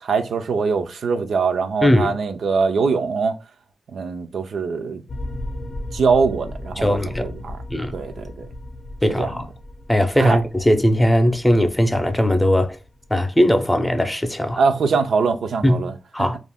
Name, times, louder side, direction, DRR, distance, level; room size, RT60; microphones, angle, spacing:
voice 1, 0.0-3.4 3.9-5.0 5.9-7.6 7.9-8.5 9.1-9.3 10.2-10.4 14.6-15.9 16.2-16.3, right 5 dB, 85° right, 0.4 m, -22 dB
voice 2, 1.8-2.1 6.8-7.3 7.7-7.9 9.0-9.5 9.9-12.8 13.1-14.6 15.6-15.8 16.1-16.4, equal, 10° left, 0.5 m, -19 dB
sound 1, 5.1-13.4, left 1 dB, 55° left, 0.5 m, -36 dB
2.4 x 2.1 x 3.4 m
cardioid pair, 75°, 0 cm